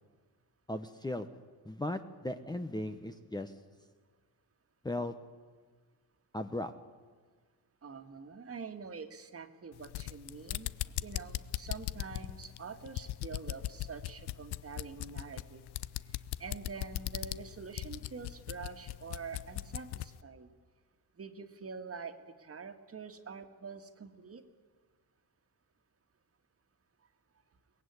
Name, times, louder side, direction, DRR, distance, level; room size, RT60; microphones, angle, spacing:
voice 1, 0.7-1.3 1.6-3.5 4.8-5.1 6.3-6.7, left 1 dB, 10° left, 8 dB, 1.0 m, -37 dB
voice 2, 7.8-10.7 11.0-15.6 16.4-20.5 21.2-24.4, right 5 dB, 35° right, 7 dB, 1.9 m, -46 dB
sound 1, 9.7-20.2, left 15 dB, 85° left, 0.7 m, -39 dB
22.5 x 19.0 x 9.7 m, 1.5 s
cardioid pair, 115°, 39 cm